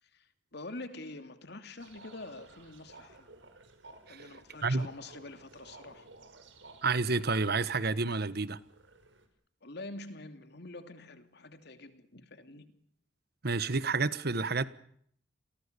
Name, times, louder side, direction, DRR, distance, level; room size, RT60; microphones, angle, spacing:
voice 1, 0.0-3.3 4.1-6.1 9.6-12.7, left 2 dB, 60° left, 2.9 m, -46 dB
sound 1, 1.8-9.3, right 3 dB, 75° right, 5.1 m, -55 dB
voice 2, 6.8-8.6 13.4-14.6, right 3 dB, 55° right, 1.4 m, -29 dB
29.5 x 22.0 x 7.0 m
head